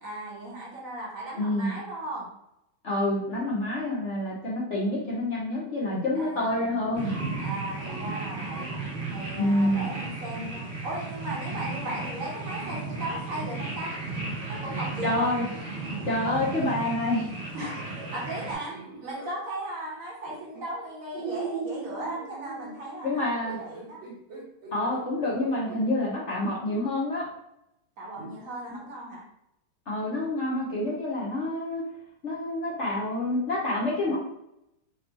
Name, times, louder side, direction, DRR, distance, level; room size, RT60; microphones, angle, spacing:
voice 1, 0.0-2.3 6.1-6.5 7.4-8.7 9.1-13.9 14.5-15.3 16.2-16.3 17.5-18.7 19.0-24.0 28.0-29.2, right 1 dB, 55° right, -3 dB, 1.2 m, -37 dB
voice 2, 1.4-1.7 2.8-7.1 9.4-9.9 15.0-15.4 16.0-17.3 23.0-23.6 24.7-27.3 29.9-31.8 32.2-34.2, left 1 dB, 50° left, -5 dB, 1.0 m, -27 dB
sound 1, 6.9-18.5, right 3 dB, 35° right, 0.9 m, -35 dB
sound 2, 17.5-19.4 20.3-20.6 21.1-25.8 26.4-26.5 28.2-28.4, right 5 dB, 80° right, 1.9 m, -39 dB
4.5 x 2.9 x 2.8 m, 0.81 s
omnidirectional pair, 1.9 m